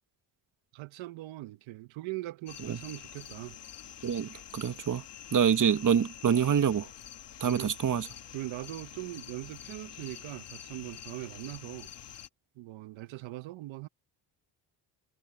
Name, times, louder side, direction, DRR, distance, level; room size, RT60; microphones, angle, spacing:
voice 1, 0.7-3.6 7.4-7.7 8.3-11.9 12.6-13.9, right 17 dB, 85° right, 1.2 m, -41 dB
sound 1, 2.5-12.3, left 10 dB, 65° left, 1.8 m, -47 dB
voice 2, 4.0-5.0 5.3-6.9 7.4-8.1, right 8 dB, 45° right, 1.6 m, -26 dB
supercardioid pair, 65°, 45 cm